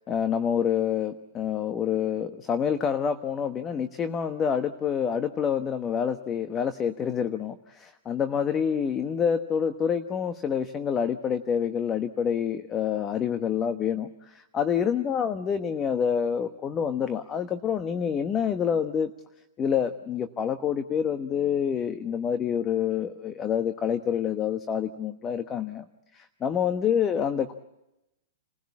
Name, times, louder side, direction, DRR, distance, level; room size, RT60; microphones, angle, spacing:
voice 1, 0.1-19.1 19.6-25.8 26.1-27.5, left 8 dB, 25° left, 10 dB, 1.1 m, -27 dB
29.0 x 15.5 x 8.5 m, 0.93 s
hypercardioid pair, 135°, 0 cm